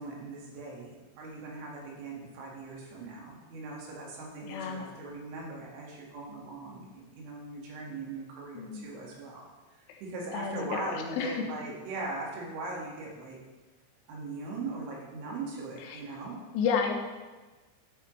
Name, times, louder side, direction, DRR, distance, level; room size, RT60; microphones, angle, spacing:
voice 1, 0.0-9.5 9.8-13.4 14.1-16.4, right 3 dB, 70° right, -2 dB, 4.1 m, -40 dB
voice 2, 4.4-4.9 8.5-8.9 10.3-11.4 15.8-16.0 16.5-16.9, left 6 dB, 80° left, 3 dB, 3.3 m, -31 dB
12.5 x 9.6 x 3.2 m, 1.2 s
omnidirectional pair, 5.8 m